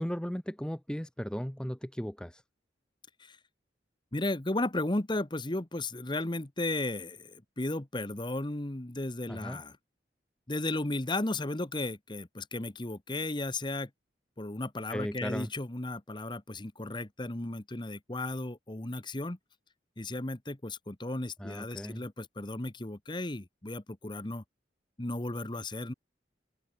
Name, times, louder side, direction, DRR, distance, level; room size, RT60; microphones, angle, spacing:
voice 1, 0.0-2.4 9.3-9.6 14.9-15.5 21.4-22.0, equal, 5° left, 0.7 m, -36 dB
voice 2, 4.1-9.7 10.5-13.9 14.4-19.4 20.0-24.4 25.0-25.9, left 2 dB, 25° left, 1.2 m, -34 dB
open air
head